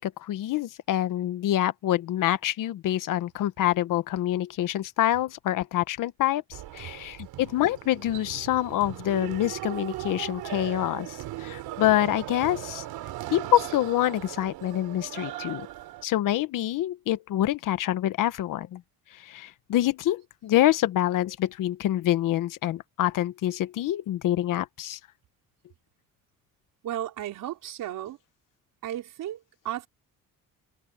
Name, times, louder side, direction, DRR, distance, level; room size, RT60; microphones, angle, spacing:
voice 1, 0.0-6.4 6.7-12.8 13.3-15.7 16.0-18.8 19.1-25.0, left 13 dB, 60° left, 1.1 m, -26 dB
sound 1, 6.5-16.0, right 15 dB, 80° right, 3.6 m, -38 dB
voice 2, 26.8-28.2 28.8-29.9, right 12 dB, 60° right, 4.3 m, -34 dB
cardioid pair, 170°, 36 cm